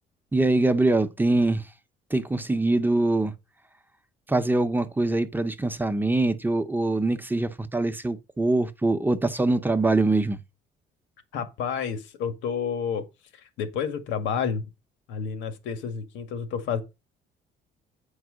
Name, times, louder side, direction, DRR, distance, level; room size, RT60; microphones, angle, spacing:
voice 1, 0.3-1.7 2.1-3.3 4.3-10.4, right 2 dB, 10° right, 0.8 m, -23 dB
voice 2, 11.3-13.1 13.3-14.7 15.1-16.8, left 6 dB, 90° left, 1.9 m, -30 dB
9.2 x 4.8 x 6.3 m
cardioid pair, 130°, 19 cm